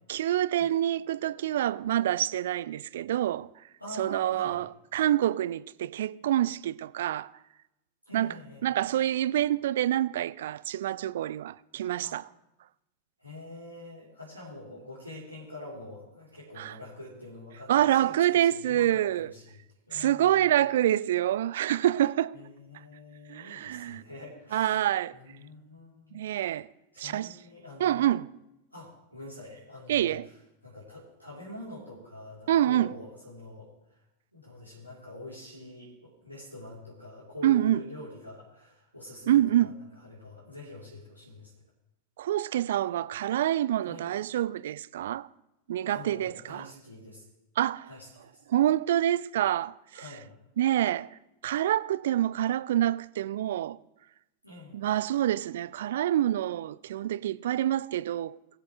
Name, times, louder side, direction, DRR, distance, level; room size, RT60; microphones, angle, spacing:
voice 1, 0.1-3.5 4.0-7.3 8.1-8.4 8.6-12.3 16.6-16.8 17.7-19.3 19.9-22.3 23.3-24.0 24.5-25.2 26.1-26.7 27.0-27.4 27.8-28.3 29.9-30.3 32.5-32.9 37.4-37.8 39.3-39.7 42.2-45.3 45.7-46.7 47.6-47.9 48.5-50.0 50.6-51.1 51.4-53.8 54.7-58.4, right 12 dB, 60° right, 0.3 m, -27 dB
voice 2, 3.8-4.6 8.0-8.7 12.0-12.2 13.2-19.6 19.9-20.7 22.3-24.8 25.1-26.2 26.9-28.1 28.7-30.1 30.6-33.7 34.3-39.7 40.0-41.5 43.8-44.0 45.8-47.2 47.9-48.4 49.9-50.3 54.4-54.8, left 1 dB, 90° left, 3.6 m, -46 dB
21.0 x 7.7 x 3.2 m
figure-of-eight pair, 90°, 0 cm